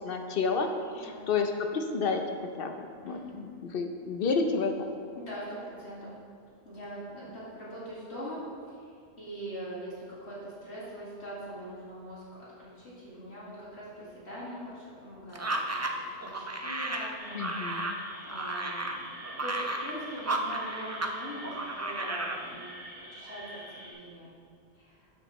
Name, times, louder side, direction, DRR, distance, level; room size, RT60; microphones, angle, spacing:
voice 1, 0.0-0.7 1.0-2.2 2.6-2.7 3.0-4.9 17.3-18.0, left 4 dB, 60° left, 5 dB, 0.9 m, -30 dB
voice 2, 0.9-1.3 3.0-3.4 5.2-6.1 6.6-8.9 9.2-17.4 18.3-22.7 23.1-24.3 24.7-25.1, equal, 80° left, -8 dB, 2.4 m, -42 dB
sound 1, 15.3-21.2 21.4-22.4, right 2 dB, 20° right, 0.4 m, -33 dB
sound 2, 17.2-23.9, right 1 dB, 70° right, 2.7 m, -46 dB
13.0 x 6.5 x 3.1 m, 2.2 s
omnidirectional pair, 1.1 m